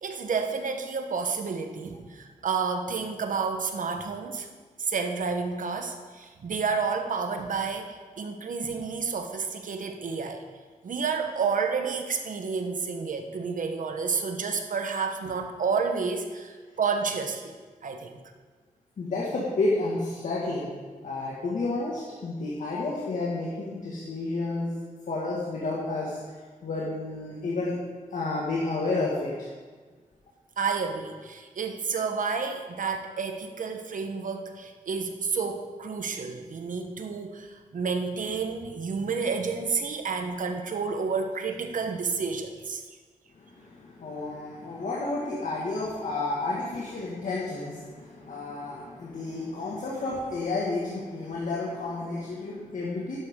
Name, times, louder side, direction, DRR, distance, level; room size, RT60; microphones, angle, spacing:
voice 1, 0.0-4.5 4.8-10.4 10.8-18.2 30.6-42.8, right 5 dB, 75° right, 5 dB, 1.1 m, -30 dB
voice 2, 19.0-20.7 21.0-24.7 25.1-26.2 26.6-27.7 28.1-29.5 43.5-53.2, left 2 dB, 70° left, -5 dB, 1.9 m, -31 dB
11.5 x 11.0 x 3.8 m, 1.4 s
wide cardioid pair, 95°, 14 cm